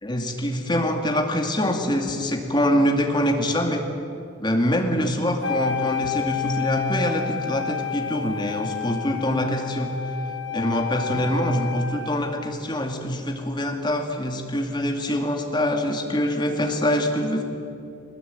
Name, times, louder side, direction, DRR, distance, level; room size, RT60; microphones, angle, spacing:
voice 1, 0.0-3.8 4.4-9.9 10.5-17.4, equal, 25° left, 3 dB, 2.4 m, -24 dB
Wind instrument woodwind instrument, 5.4-12.4, left 8 dB, 65° left, 2.3 m, -30 dB
21.0 x 20.5 x 9.0 m, 2.6 s
head